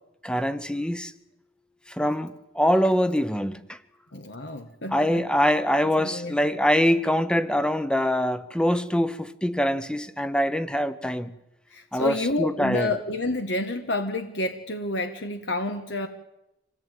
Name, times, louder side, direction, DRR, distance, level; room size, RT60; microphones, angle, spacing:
voice 1, 0.2-1.1 1.9-3.8 4.9-11.3 11.9-12.9, equal, 5° left, 1.0 m, -24 dB
voice 2, 4.1-5.2 6.0-6.3 11.7-16.1, left 2 dB, 70° left, 1.4 m, -29 dB
26.0 x 17.5 x 9.1 m
head